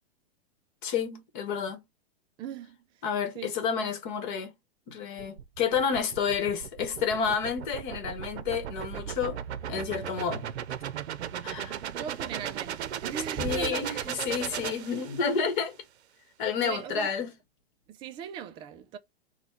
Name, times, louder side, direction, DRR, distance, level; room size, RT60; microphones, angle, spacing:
voice 1, 0.8-1.8 3.0-4.5 4.9-9.4 9.7-10.5 11.4-11.8 13.4-15.8 16.4-17.3, left 6 dB, 50° left, 1.5 m, -30 dB
voice 2, 2.4-2.8 3.3-3.6 12.0-13.9 16.6-17.1 17.9-19.0, right 8 dB, 15° right, 0.4 m, -38 dB
sound 1, 5.2-15.5, right 9 dB, 90° right, 0.7 m, -37 dB
4.1 x 2.3 x 4.2 m
hypercardioid pair, 145°, 32 cm